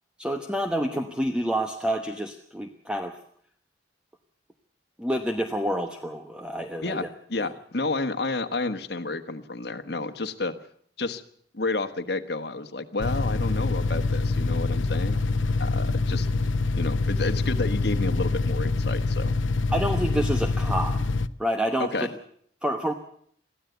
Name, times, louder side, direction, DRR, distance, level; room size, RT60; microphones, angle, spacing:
voice 1, 0.2-3.2 5.0-7.0 7.4-7.5 19.7-21.1 21.4-21.9 22.6-22.9, equal, 5° right, 5 dB, 1.1 m, -28 dB
voice 2, 6.8-10.6 11.0-11.2 11.5-15.2 15.6-16.3 16.7-19.4 21.8-22.1, left 3 dB, 55° left, 7 dB, 1.4 m, -30 dB
sound 1, 13.0-21.3, left 3 dB, 90° left, 0.8 m, -25 dB
22.5 x 15.0 x 8.2 m, 0.63 s
head